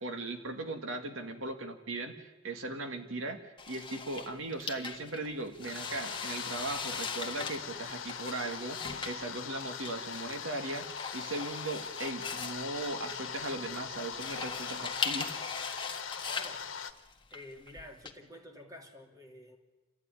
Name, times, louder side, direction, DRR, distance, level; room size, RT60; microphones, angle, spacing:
voice 1, 0.0-8.8 9.1-10.9 11.1-15.3, right 2 dB, 90° right, 6 dB, 2.0 m, -38 dB
sound 1, 3.6-18.1, left 5 dB, 25° left, 1.6 m, -40 dB
sound 2, 5.6-16.9, left 7 dB, 90° left, 1.3 m, -41 dB
voice 2, 16.3-16.6 17.3-19.6, left 1 dB, 20° right, 3 dB, 2.8 m, -49 dB
29.0 x 14.0 x 9.9 m, 1.2 s
head